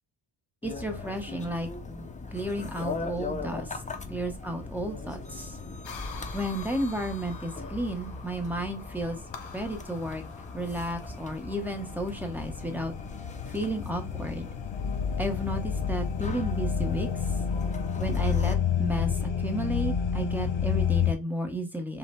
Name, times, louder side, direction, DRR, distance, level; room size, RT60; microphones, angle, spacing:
sound 1, 0.6-18.6, left 3 dB, 20° left, 0.4 m, -40 dB
voice 1, 0.6-1.7 2.3-3.7 4.1-5.6 6.3-9.2 9.5-10.2 10.5-12.9 13.5-14.5 15.2-17.1 18.0-22.0, right 1 dB, 5° right, 4 dB, 0.8 m, -33 dB
sound 2, 3.4-8.7, right 2 dB, 85° right, 1.4 m, -48 dB
sound 3, 5.8-21.1, left 7 dB, 80° left, 0.9 m, -31 dB
5.3 x 2.1 x 4.1 m, 0.26 s
wide cardioid pair, 150°, 45 cm